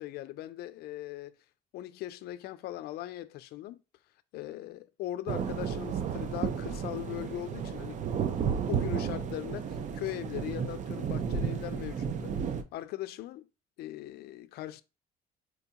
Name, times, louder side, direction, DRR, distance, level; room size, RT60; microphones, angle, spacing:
voice 1, 0.0-1.4 1.7-3.8 4.3-8.0 8.7-12.4 12.7-13.5 13.8-14.8, left 14 dB, 70° left, 0.4 m, -40 dB
sound 1, 5.3-12.6, right 7 dB, 45° right, 0.4 m, -33 dB
4.5 x 2.3 x 2.8 m
cardioid pair, 110°, 17 cm